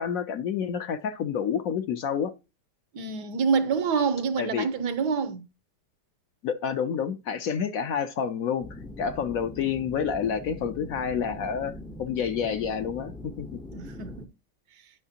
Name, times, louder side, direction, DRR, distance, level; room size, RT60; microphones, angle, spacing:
voice 1, 0.0-2.3 4.4-4.7 6.4-8.7 9.0-11.7 12.0-13.6, left 7 dB, 65° left, 0.9 m, -29 dB
voice 2, 2.9-5.5 13.7-14.3, right 5 dB, 75° right, 1.4 m, -27 dB
sound 1, 8.6-14.3, left 1 dB, 5° left, 0.3 m, -42 dB
10.5 x 5.7 x 2.8 m
omnidirectional pair, 1.9 m